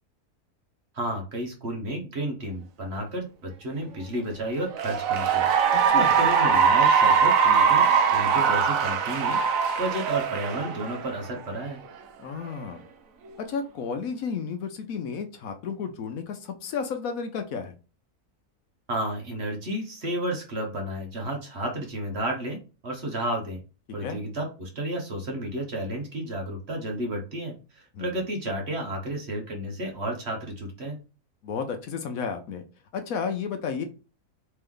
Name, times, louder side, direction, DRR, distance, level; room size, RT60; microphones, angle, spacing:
voice 1, 0.9-7.9 8.1-9.4 9.8-11.8 18.9-23.6 23.9-31.0, right 1 dB, 45° right, 2 dB, 1.2 m, -32 dB
Cheering / Applause, 4.6-11.3, right 6 dB, 65° right, 1.0 m, -21 dB
voice 2, 5.7-6.2 12.2-12.8 13.4-17.7 24.0-24.2 27.9-28.2 31.4-32.6 32.9-33.8, left 6 dB, 70° left, 6 dB, 1.0 m, -32 dB
3.4 x 3.3 x 3.6 m, 0.33 s
omnidirectional pair, 1.6 m